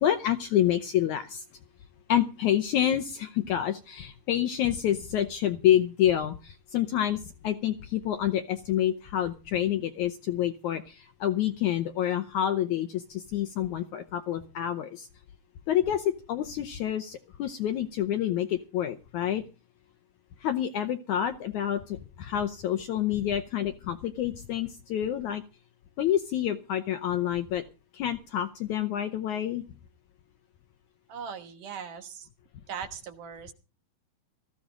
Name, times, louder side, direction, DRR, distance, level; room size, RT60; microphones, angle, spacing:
voice 1, 0.0-1.4 2.1-15.1 15.7-19.4 20.4-25.4 26.0-27.6 27.9-29.6, left 11 dB, 70° left, 8 dB, 1.9 m, -28 dB
voice 2, 31.1-32.3 32.7-33.5, right 7 dB, 65° right, 7 dB, 2.7 m, -39 dB
19.0 x 14.5 x 3.8 m, 0.32 s
omnidirectional pair, 4.3 m